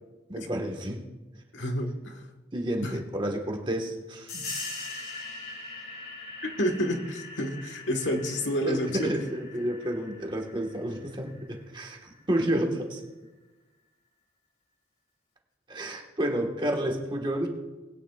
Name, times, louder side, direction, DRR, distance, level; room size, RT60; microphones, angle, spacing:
voice 1, 0.3-1.0 2.5-4.3 8.6-13.0 15.7-17.5, right 1 dB, 25° right, 2 dB, 1.5 m, -30 dB
voice 2, 1.5-2.3 2.8-3.0 4.3-4.5 6.4-9.2, equal, 80° left, 4 dB, 1.5 m, -29 dB
sound 1, 4.3-12.6, left 2 dB, 40° left, 2.3 m, -42 dB
20.5 x 9.6 x 2.4 m, 1.2 s
head